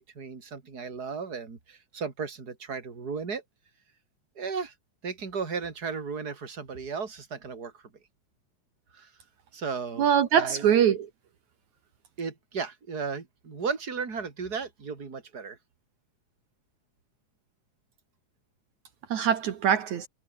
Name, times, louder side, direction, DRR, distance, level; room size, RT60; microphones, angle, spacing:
voice 1, 0.0-3.4 4.4-4.7 5.0-7.7 8.9-9.1 9.5-10.1 10.3-10.6 12.2-15.6, right 5 dB, 30° right, 3.7 m, -35 dB
voice 2, 10.0-11.1 19.1-20.1, right 9 dB, 70° right, 3.0 m, -23 dB
omnidirectional pair, 3.5 m